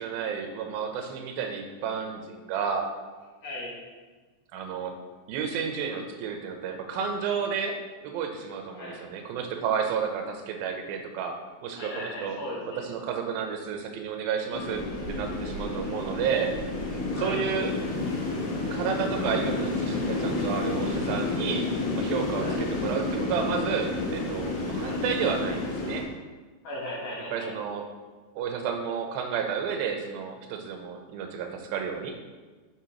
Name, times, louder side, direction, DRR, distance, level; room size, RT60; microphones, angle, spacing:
voice 1, 0.0-2.9 4.5-4.9 5.3-11.4 11.6-12.4 12.8-14.8 15.1-16.5 17.2-17.7 18.7-26.0 27.3-27.8 28.4-32.2, right 6 dB, 80° right, 5 dB, 2.5 m, -31 dB
voice 2, 3.4-3.8 8.7-9.0 11.7-12.8 17.1-17.4 22.4-22.6 24.8-25.0 26.6-27.5, left 1 dB, 55° left, -5 dB, 2.3 m, -37 dB
sound 1, 14.5-26.0, left 2 dB, 75° left, 3.1 m, -30 dB
8.0 x 6.7 x 3.0 m, 1.3 s
omnidirectional pair, 4.3 m